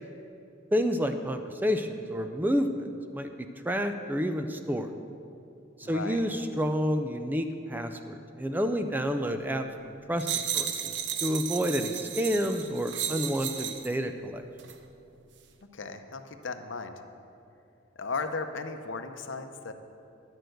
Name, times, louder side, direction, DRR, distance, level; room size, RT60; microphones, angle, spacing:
voice 1, 0.7-4.9 5.8-10.3 10.5-10.9 11.2-14.4, equal, 10° right, 7 dB, 0.4 m, -29 dB
voice 2, 5.8-6.2 15.7-16.9 18.0-19.7, left 4 dB, 75° left, 8 dB, 0.7 m, -36 dB
sound 1, 10.2-14.0 14.6-14.8, right 9 dB, 65° right, 0.7 m, -33 dB
10.5 x 6.7 x 7.8 m, 2.6 s
head